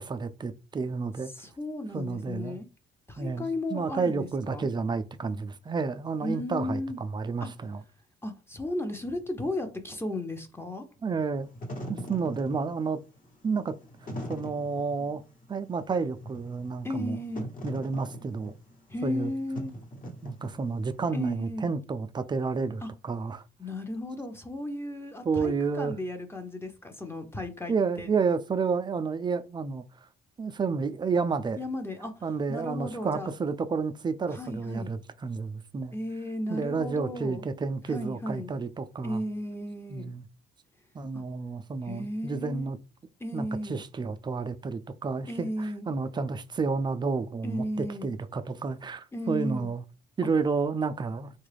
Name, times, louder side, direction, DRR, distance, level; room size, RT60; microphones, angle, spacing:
voice 1, 0.0-1.3 1.9-2.6 3.2-7.8 11.0-11.5 11.9-13.0 13.4-13.7 14.3-15.2 15.5-17.2 17.6-18.5 19.0-19.3 20.2-23.4 25.3-25.9 27.7-29.8 30.4-31.6 32.2-35.9 36.5-39.2 39.9-40.3 40.9-42.8 43.3-49.8 50.2-51.3, right 4 dB, 25° right, 0.3 m, -30 dB
voice 2, 1.3-2.7 3.1-4.7 6.2-7.0 7.4-7.5 8.2-10.8 16.8-17.5 18.9-19.7 21.1-21.7 22.8-22.9 23.6-28.1 31.6-32.1 32.5-33.3 34.3-34.9 35.9-37.4 37.9-38.5 39.0-40.1 41.1-41.2 41.8-42.7 43.2-43.8 45.3-45.9 47.4-48.1 49.1-49.7, left 1 dB, 10° left, 0.7 m, -35 dB
Wind / Fire, 11.4-20.9, equal, 40° left, 1.1 m, -41 dB
3.5 x 2.3 x 3.3 m
cardioid pair, 90°, 20 cm